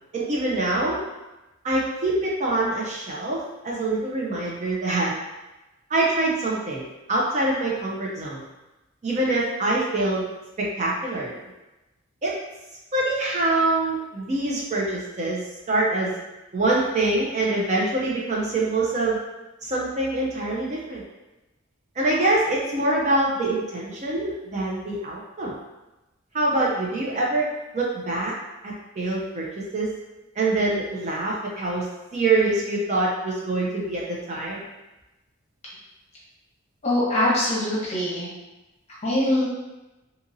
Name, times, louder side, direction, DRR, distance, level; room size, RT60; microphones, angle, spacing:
voice 1, 0.1-1.0 1.6-5.1 5.9-8.4 9.0-10.3 10.6-11.4 12.2-12.3 12.9-16.1 16.5-19.2 19.6-21.0 22.0-25.6 26.3-27.5 27.7-28.3 28.6-30.0 30.4-34.6, right 2 dB, 35° right, -4 dB, 0.4 m, -25 dB
voice 2, 36.8-38.3 39.0-39.5, left 1 dB, 30° left, -6 dB, 0.8 m, -23 dB
2.7 x 2.7 x 2.5 m, 1.0 s
head